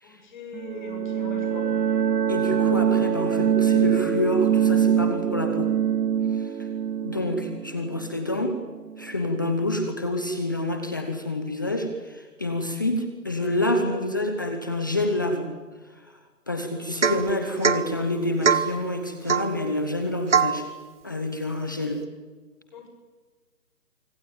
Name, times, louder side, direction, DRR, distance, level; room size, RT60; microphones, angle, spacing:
voice 1, 0.0-1.7 21.8-22.0 22.7-22.9, left 4 dB, 30° left, 3 dB, 7.4 m, -42 dB
sound 1, 0.5-9.1, right 8 dB, 75° right, 0.8 m, -24 dB
voice 2, 2.3-5.7 6.3-6.7 7.0-8.6 9.0-15.5 16.5-20.7 21.0-22.0, left 1 dB, 10° left, 6 dB, 0.9 m, -27 dB
Domestic sounds home sounds / Chink clink / Drip, 17.0-17.3 17.6-17.9 18.4-18.7 19.3-19.5 20.3-20.6, right 6 dB, 45° right, 1.6 m, -21 dB
25.0 x 25.0 x 9.1 m, 1.4 s
figure-of-eight pair, 160°, 49 cm